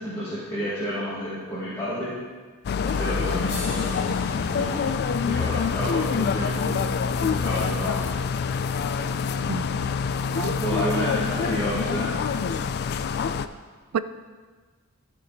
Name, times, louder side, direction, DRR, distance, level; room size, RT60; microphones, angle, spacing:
voice 1, 0.0-2.2 2.8-4.2 4.5-4.9 5.2-6.9 7.2-8.1 10.6-12.2, equal, 15° left, -11 dB, 2.0 m, -30 dB
sound 1, 2.6-13.5, left 6 dB, 45° left, 0.3 m, -26 dB
sound 2, 3.5-7.7 9.0-9.1, left 2 dB, 85° left, 2.5 m, -43 dB
voice 2, 9.5-10.6 13.9-14.0, right 6 dB, 85° right, 13 dB, 0.4 m, -32 dB
13.5 x 4.5 x 4.1 m, 1.4 s
head